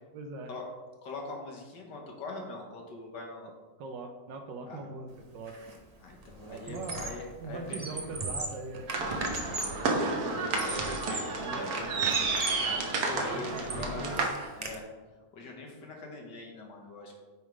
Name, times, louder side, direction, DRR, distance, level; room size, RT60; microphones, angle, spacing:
voice 1, 0.1-0.5 3.8-5.6 6.4-7.0 7.4-9.1 11.4-11.6 13.0-14.3, right 3 dB, 80° right, 6 dB, 1.4 m, -41 dB
voice 2, 1.0-3.5 4.6-4.8 6.0-8.0 9.3-12.1 13.0-14.8 15.3-17.2, left 3 dB, 70° left, 0 dB, 1.8 m, -43 dB
Squeak, 5.5-5.8 6.1-7.3 7.6-9.9 10.4-11.4 11.7-12.7 13.2-14.7, right 2 dB, 45° right, 0.5 m, -38 dB
sound 1, 8.9-14.3, right 3 dB, 60° right, 1.3 m, -31 dB
8.9 x 3.6 x 4.7 m, 1.3 s
omnidirectional pair, 1.9 m